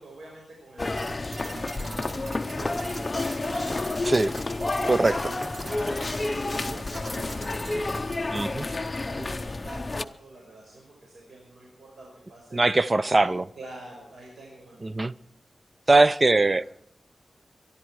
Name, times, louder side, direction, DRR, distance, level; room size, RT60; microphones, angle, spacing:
voice 1, 0.0-4.1 4.7-6.1 6.4-12.7 13.1-15.1 16.6-16.7, right 1 dB, 90° right, 5.5 m, -47 dB
sound 1, 0.8-10.1, left 2 dB, 30° left, 0.7 m, -30 dB
sound 2, 1.0-8.5, right 4 dB, 65° right, 0.7 m, -44 dB
sound 3, 1.7-7.6, left 1 dB, 5° left, 2.8 m, -41 dB
voice 2, 8.3-8.7 12.5-13.4 14.8-15.1 15.9-16.7, right 2 dB, 30° right, 0.5 m, -21 dB
23.5 x 11.5 x 4.7 m
wide cardioid pair, 100°, 0 cm